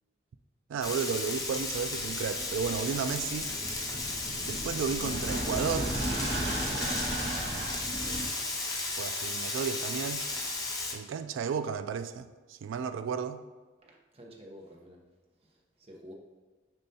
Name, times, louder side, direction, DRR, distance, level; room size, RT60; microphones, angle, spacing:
voice 1, 0.7-3.5 4.5-5.9 9.0-10.2 10.9-13.4, right 6 dB, 85° right, 0.3 m, -33 dB
Frying (food), 0.8-10.9, left 2 dB, 20° left, 0.7 m, -34 dB
sound 1, 1.4-8.3, right 1 dB, 55° right, 1.8 m, -36 dB
voice 2, 13.8-15.0 15.9-16.1, equal, 30° right, 0.9 m, -49 dB
6.9 x 5.2 x 2.8 m
head